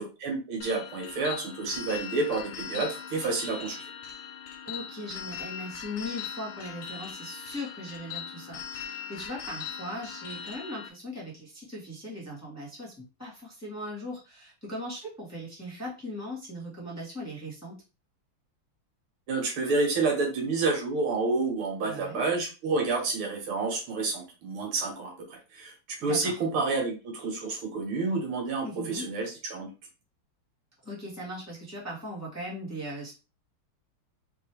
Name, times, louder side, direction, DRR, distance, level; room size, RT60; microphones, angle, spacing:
voice 1, 0.0-3.9 19.3-29.7, right 3 dB, 75° right, 2 dB, 2.1 m, -29 dB
sound 1, 0.6-10.9, left 8 dB, 90° left, 1.6 m, -40 dB
voice 2, 4.6-17.8 21.8-22.2 26.0-26.4 28.6-29.1 30.8-33.1, left 1 dB, 10° left, -6 dB, 1.4 m, -39 dB
4.6 x 3.1 x 3.3 m, 0.30 s
omnidirectional pair, 2.4 m